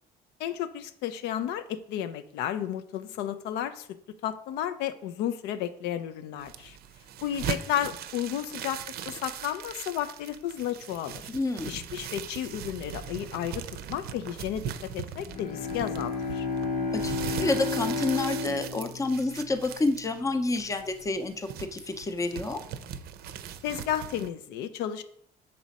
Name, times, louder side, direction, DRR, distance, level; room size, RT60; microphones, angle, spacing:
voice 1, 0.4-6.8 7.2-8.8 9.1-11.3 11.7-16.5 23.6-25.0, left 10 dB, 90° left, 10 dB, 0.4 m, -33 dB
sound 1, 6.4-24.3, right 9 dB, 65° right, 0.5 m, -40 dB
voice 2, 11.3-11.8 16.9-22.6, left 2 dB, 20° left, 9 dB, 0.5 m, -29 dB
Bowed string instrument, 15.2-20.1, left 4 dB, 50° left, 0.8 m, -32 dB
6.1 x 4.2 x 4.0 m, 0.67 s
cardioid pair, 110°, 17 cm